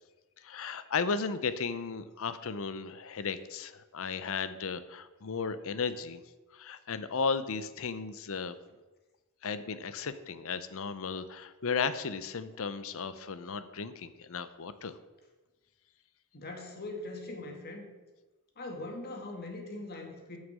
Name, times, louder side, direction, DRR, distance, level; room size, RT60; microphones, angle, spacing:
voice 1, 0.4-6.2 6.5-8.6 9.4-15.0, left 5 dB, 65° left, 13 dB, 0.7 m, -35 dB
voice 2, 16.3-17.9 18.6-20.4, left 2 dB, 45° left, 2 dB, 2.0 m, -41 dB
9.0 x 6.6 x 7.5 m, 1.2 s
head